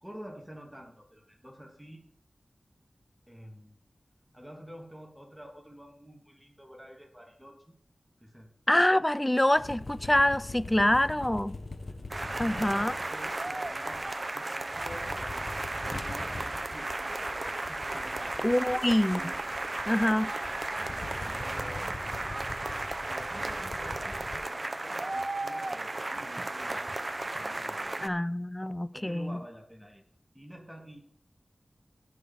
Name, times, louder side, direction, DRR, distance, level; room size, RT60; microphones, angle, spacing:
voice 1, 0.0-2.1 3.3-3.8 4.3-7.7 8.2-8.5 12.4-15.5 15.8-18.9 20.1-20.3 20.8-22.0 23.1-27.0 27.3-28.0 28.9-30.0 30.3-31.1, equal, 5° right, 2.8 m, -49 dB
voice 2, 8.7-11.5 12.4-12.9 18.4-19.3 19.9-20.3 28.0-29.4, left 1 dB, 15° left, 0.5 m, -25 dB
sound 1, 9.6-14.3 14.6-24.4, left 2 dB, 50° left, 1.4 m, -43 dB
sound 2, 12.1-28.1, right 2 dB, 40° right, 0.9 m, -34 dB
16.5 x 6.5 x 4.2 m
cardioid pair, 50°, 0 cm